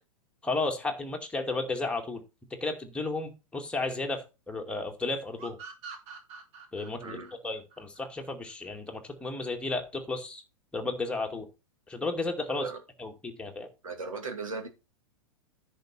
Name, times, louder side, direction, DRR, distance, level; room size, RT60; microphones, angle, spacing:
voice 1, 0.4-2.2 2.6-5.6 6.7-7.2 7.4-10.4 10.7-11.5 11.9-12.7 13.0-13.7, left 3 dB, 5° left, 2.2 m, -33 dB
sound 1, 5.4-8.8, right 5 dB, 35° right, 2.3 m, -46 dB
voice 2, 13.8-14.7, right 4 dB, 70° right, 2.6 m, -37 dB
10.5 x 6.3 x 4.3 m
figure-of-eight pair, 100°, 18 cm